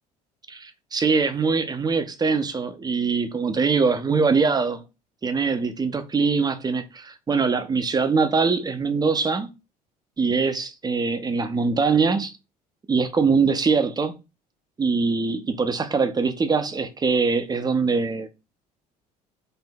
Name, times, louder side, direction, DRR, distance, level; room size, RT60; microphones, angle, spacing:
voice 1, 0.5-4.8 5.2-9.5 10.2-12.3 12.9-14.2 14.8-18.3, right 4 dB, 20° right, 0.5 m, -23 dB
4.4 x 2.6 x 2.2 m
hypercardioid pair, 60°, 20 cm